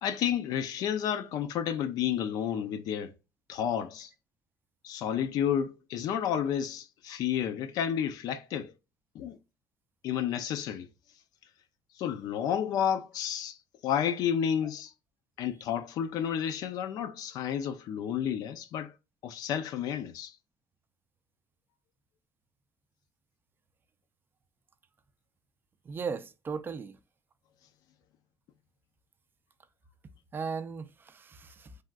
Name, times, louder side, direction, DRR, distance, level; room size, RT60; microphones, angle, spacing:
voice 1, 0.0-3.1 3.5-4.1 4.8-8.7 9.1-9.4 10.0-10.9 12.0-13.6 13.8-14.9 15.4-18.9 19.2-20.3, left 9 dB, 65° left, 0.4 m, -31 dB
voice 2, 25.8-27.0 30.3-31.8, right 5 dB, 30° right, 0.3 m, -37 dB
3.4 x 2.5 x 2.2 m
cardioid pair, 100°, 7 cm